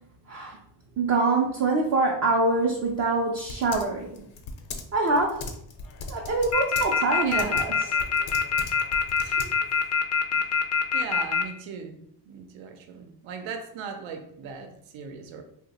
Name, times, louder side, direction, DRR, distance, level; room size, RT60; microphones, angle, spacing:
voice 1, 1.0-4.3 4.9-5.5 6.1-7.7, right 3 dB, 35° right, -1 dB, 0.4 m, -25 dB
Typing, 2.5-9.9, left 3 dB, 75° left, 0.7 m, -40 dB
sound 1, 6.5-11.4, left 6 dB, 35° left, 0.4 m, -23 dB
voice 2, 7.2-7.8 9.2-9.5 10.3-10.6 10.9-15.4, right 6 dB, 80° right, 5 dB, 0.7 m, -39 dB
2.9 x 2.1 x 4.1 m, 0.69 s
cardioid pair, 150°, 46 cm